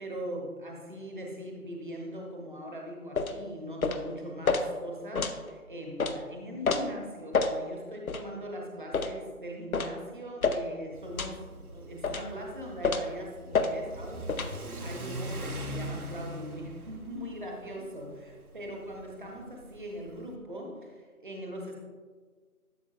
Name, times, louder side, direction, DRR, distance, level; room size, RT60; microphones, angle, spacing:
voice 1, 0.0-21.8, equal, 35° right, 0 dB, 0.9 m, -41 dB
sound 1, 3.2-3.4 3.8-4.0 4.5-4.6 5.1-5.4 6.0-6.1 6.6-6.8 7.3-7.5 8.1-8.2 8.9-9.1 9.7-9.9 10.4-10.6 11.2-11.4 12.0-12.3 12.8-13.1 13.5-13.7 14.3-14.5, left 4 dB, 70° left, 0.7 m, -28 dB
Car / Accelerating revving vroom, 10.9-20.3, right 1 dB, 80° right, 1.1 m, -41 dB
12.0 x 5.8 x 2.4 m, 1.5 s
figure-of-eight pair, 165°, 44 cm